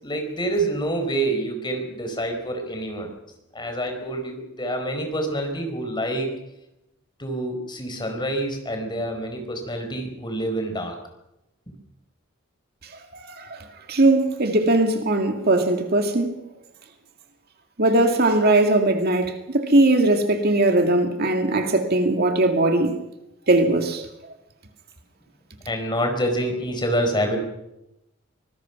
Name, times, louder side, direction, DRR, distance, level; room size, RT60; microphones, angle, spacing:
voice 1, 0.0-3.1 3.5-6.3 7.2-11.0 25.7-27.4, right 1 dB, 20° left, 4.7 m, -27 dB
voice 2, 13.1-16.4 17.8-23.0 23.5-24.1, right 2 dB, 50° right, 2.2 m, -20 dB
25.0 x 20.5 x 6.0 m
head